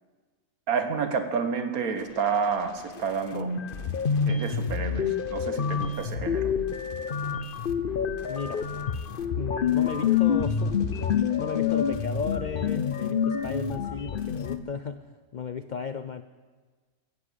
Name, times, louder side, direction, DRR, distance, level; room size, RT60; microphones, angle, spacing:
voice 1, 0.7-3.5 4.3-6.5, right 6 dB, 85° right, 8 dB, 1.7 m, -29 dB
sound 1, 3.0-3.1 3.3-14.6, left 7 dB, 45° left, 0.8 m, -27 dB
voice 2, 8.3-8.7 9.4-16.2, left 6 dB, 85° left, 12 dB, 0.4 m, -35 dB
14.0 x 11.0 x 8.4 m, 1.4 s
omnidirectional pair, 1.5 m